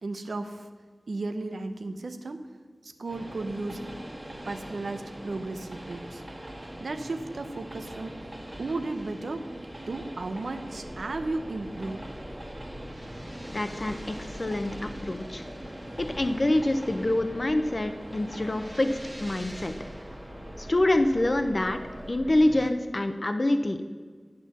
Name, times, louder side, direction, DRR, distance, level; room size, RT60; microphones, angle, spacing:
voice 1, 0.0-0.7 1.1-2.5 2.8-3.8 4.4-6.2 6.8-8.2 8.6-9.5 9.9-12.0, right 2 dB, 85° right, 7 dB, 0.7 m, -34 dB
Train, 3.1-22.2, right 1 dB, 35° right, 1.5 m, -43 dB
sound 1, 10.7-22.7, equal, 10° right, 1.2 m, -44 dB
voice 2, 13.5-15.4 16.0-19.7 20.6-21.8 22.1-23.8, left 1 dB, 50° left, 8 dB, 0.6 m, -26 dB
10.0 x 4.4 x 7.0 m, 1.5 s
cardioid pair, 40°, 0 cm